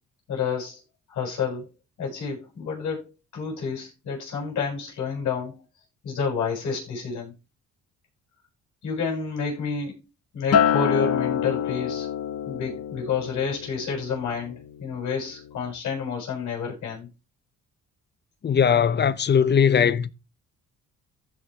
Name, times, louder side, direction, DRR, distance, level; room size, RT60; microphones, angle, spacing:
voice 1, 0.3-0.8 1.1-1.7 2.0-5.6 6.0-7.3 8.8-10.0 10.3-12.1 12.5-17.1, left 5 dB, 75° left, 6.9 m, -29 dB
Acoustic guitar, 10.5-14.9 15.3-15.7, left 8 dB, 55° left, 1.2 m, -27 dB
voice 2, 18.4-20.1, left 7 dB, 35° left, 0.7 m, -19 dB
15.0 x 5.4 x 3.5 m
cardioid pair, 90°, 30 cm